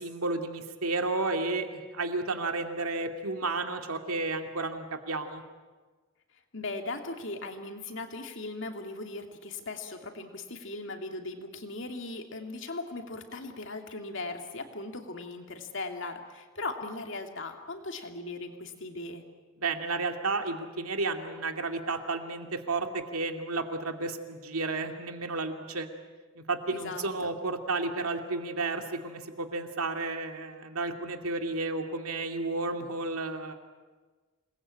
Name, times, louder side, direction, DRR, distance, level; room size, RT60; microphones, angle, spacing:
voice 1, 0.0-5.4 19.6-25.9 26.4-33.5, right 3 dB, 80° right, 5 dB, 2.4 m, -32 dB
voice 2, 6.5-19.2 26.7-27.3, left 2 dB, 55° left, 4 dB, 2.6 m, -38 dB
27.5 x 20.0 x 8.7 m, 1.4 s
head